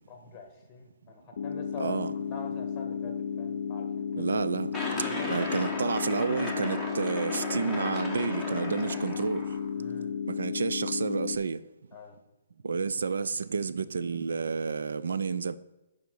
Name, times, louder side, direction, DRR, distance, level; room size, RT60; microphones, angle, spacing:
voice 1, 0.1-1.9 2.2-4.3 4.9-6.0 9.7-10.2 11.9-12.2, left 4 dB, 15° left, 1.3 m, -45 dB
sound 1, 1.4-11.4, left 7 dB, 55° left, 0.4 m, -33 dB
voice 2, 1.8-2.1 4.1-4.7 5.3-9.4 10.3-11.6 12.6-15.6, right 5 dB, 80° right, 0.4 m, -30 dB
sound 2, 4.7-9.7, left 2 dB, ahead, 1.1 m, -36 dB
6.9 x 5.1 x 6.3 m
hypercardioid pair, 165°, 0 cm